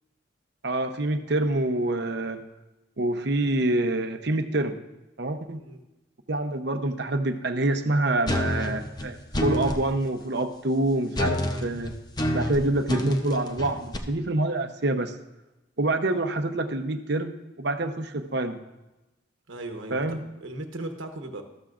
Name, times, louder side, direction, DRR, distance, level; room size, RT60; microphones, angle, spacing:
voice 1, 0.6-2.4 3.0-4.8 5.2-5.6 6.3-11.9 12.3-15.1 15.8-18.6 19.9-20.2, right 2 dB, 55° right, 7 dB, 0.8 m, -26 dB
sound 1, 8.3-9.8 11.1-14.0, left 1 dB, 20° left, 0.8 m, -28 dB
voice 2, 19.5-21.4, right 2 dB, 75° right, 4 dB, 1.1 m, -37 dB
13.5 x 13.0 x 2.5 m, 0.98 s
head